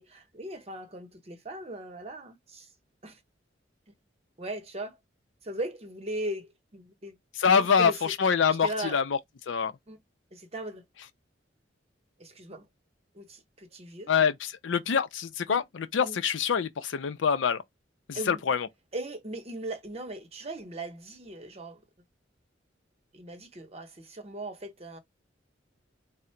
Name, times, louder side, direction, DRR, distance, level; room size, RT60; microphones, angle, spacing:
voice 1, 0.0-2.7 3.0-3.2 4.4-5.0 5.4-7.2 7.5-8.2 8.6-9.0 9.9-10.0 10.3-10.8 12.2-12.7 13.1-14.1 15.5-15.6 16.0-16.2 18.1-18.4 18.9-21.8 23.1-25.0, right 1 dB, 35° right, 0.8 m, -38 dB
voice 2, 7.4-9.0 9.5-9.7 14.1-17.6 18.1-18.7, left 6 dB, 75° left, 0.5 m, -25 dB
3.7 x 2.1 x 4.4 m
head